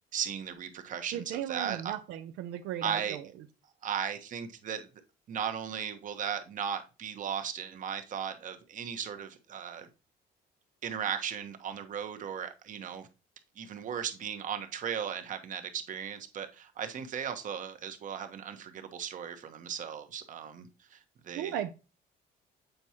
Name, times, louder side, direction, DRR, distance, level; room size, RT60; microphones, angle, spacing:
voice 1, 0.1-1.9 2.8-3.2 3.8-4.9 5.3-9.9 10.8-13.1 13.6-21.0 21.2-21.6, right 8 dB, 50° right, 1.0 m, -36 dB
voice 2, 1.1-3.2 21.3-21.7, right 11 dB, 85° right, 0.5 m, -36 dB
7.8 x 4.6 x 2.9 m
cardioid pair, 110°, 17 cm